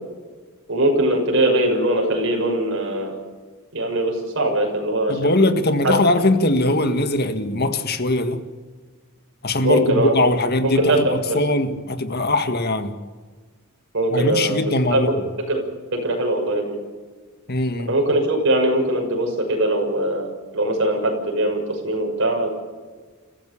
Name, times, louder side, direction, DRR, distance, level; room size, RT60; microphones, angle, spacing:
voice 1, 0.7-3.2 3.7-5.4 5.8-5.9 9.6-10.1 10.7-11.4 13.9-14.6 14.9-15.0 15.5-15.6 15.9-16.8 17.9-20.3 20.5-22.5, right 1 dB, 60° right, 6.4 m, -21 dB
voice 2, 5.1-8.4 9.4-12.9 14.1-15.2 17.5-17.9, left 2 dB, 45° left, 1.8 m, -21 dB
30.0 x 15.0 x 7.1 m
head